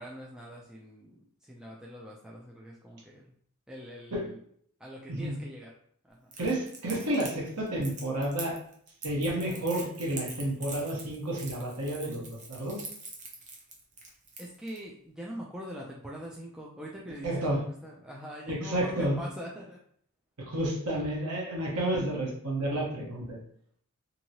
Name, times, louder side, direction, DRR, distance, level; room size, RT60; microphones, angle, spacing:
voice 1, 0.0-3.3 3.7-4.4 4.8-5.7 6.1-6.3 14.4-19.8, equal, 5° right, -4 dB, 0.3 m, -43 dB
Crackle, 6.3-14.8, right 3 dB, 35° right, 0.7 m, -43 dB
voice 2, 6.4-8.5 9.0-12.9 17.2-17.6 18.5-19.2 20.5-23.4, right 1 dB, 85° right, -2 dB, 1.0 m, -31 dB
2.9 x 2.7 x 2.8 m, 0.62 s
head